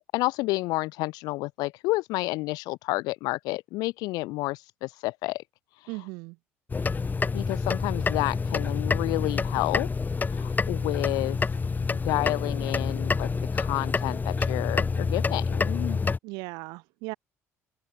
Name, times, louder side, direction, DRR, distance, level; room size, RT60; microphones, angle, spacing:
voice 1, 0.1-5.4 7.3-9.9 10.3-11.4 11.9-16.0, left 21 dB, 60° left, 1.2 m, -30 dB
voice 2, 5.9-6.4 16.2-17.1, right 27 dB, 65° right, 2.1 m, -37 dB
sound 1, 6.7-16.2, left 4 dB, 25° left, 1.0 m, -27 dB
open air
figure-of-eight pair, 55°, 7 cm